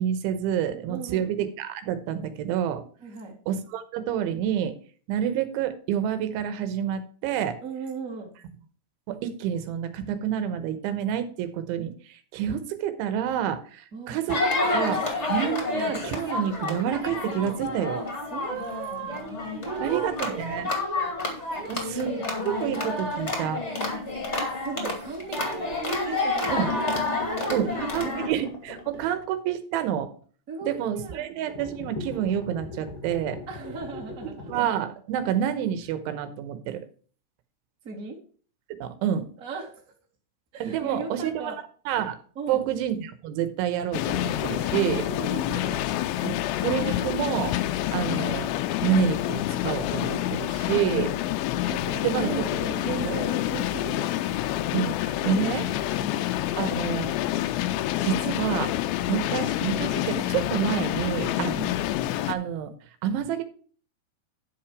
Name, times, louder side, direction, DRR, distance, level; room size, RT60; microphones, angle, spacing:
voice 1, 0.0-2.8 3.5-4.7 5.1-7.6 9.1-18.0 19.8-20.7 21.7-22.1 22.4-23.6 26.5-26.7 27.5-30.1 30.6-33.4 34.5-36.9 38.8-39.3 40.6-41.5 41.9-42.2 42.5-45.0 46.2-47.5 47.9-48.5 48.8-51.1 52.0-52.3 53.0-53.2 54.7-55.7 56.5-57.1 58.0-58.7 59.1-61.6 62.3-62.7 63.0-63.4, right 9 dB, 85° right, 11 dB, 3.3 m, -28 dB
voice 2, 0.9-1.3 3.0-3.4 7.6-8.3 13.9-14.2 18.3-19.3 19.6-20.4 21.5-22.3 23.9-24.0 24.4-28.1 28.9-29.1 30.5-31.3 33.5-34.5 37.8-38.1 39.4-39.7 40.5-41.6 42.3-42.7 44.8-45.8 51.7-54.1 55.2-55.5 56.0-56.3 61.4-61.8, right 4 dB, 25° right, -1 dB, 2.0 m, -37 dB
sound 1, 14.3-28.3, left 2 dB, 25° left, 1.4 m, -29 dB
sound 2, 26.5-29.2 31.5-34.6, left 4 dB, 55° left, 1.7 m, -37 dB
sound 3, 43.9-62.3, left 14 dB, 80° left, 2.9 m, -27 dB
11.0 x 5.9 x 4.8 m, 0.42 s
omnidirectional pair, 5.4 m